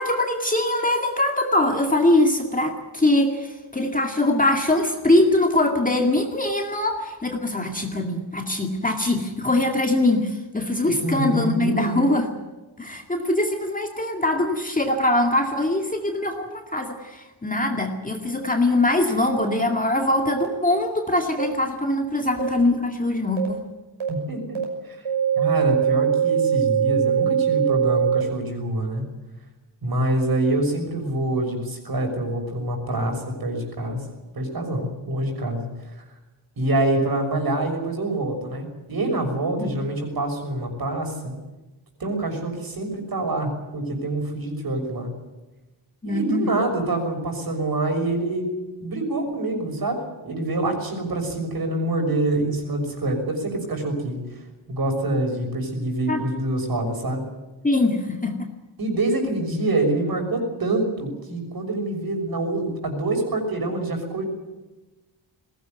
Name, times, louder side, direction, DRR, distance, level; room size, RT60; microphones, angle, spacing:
voice 1, 0.0-12.3 12.8-23.6 39.6-39.7 46.0-46.5 56.1-56.2 57.6-58.5, left 2 dB, 15° left, 3 dB, 2.2 m, -22 dB
voice 2, 10.8-12.1 24.1-24.6 24.8-25.0 25.4-29.0 29.8-34.0 34.3-35.6 36.6-41.4 42.0-45.1 46.0-48.5 48.8-54.2 54.7-57.2 58.8-64.3, right 2 dB, 50° right, 4 dB, 6.4 m, -26 dB
sound 1, 19.4-19.5 20.4-20.5 21.4-21.5 22.4-22.5 23.4-23.5 24.0-24.1 24.6-24.7 25.1-28.2, right 8 dB, 80° right, 6.0 m, -21 dB
21.5 x 17.5 x 9.5 m, 1.1 s
wide cardioid pair, 155°, 47 cm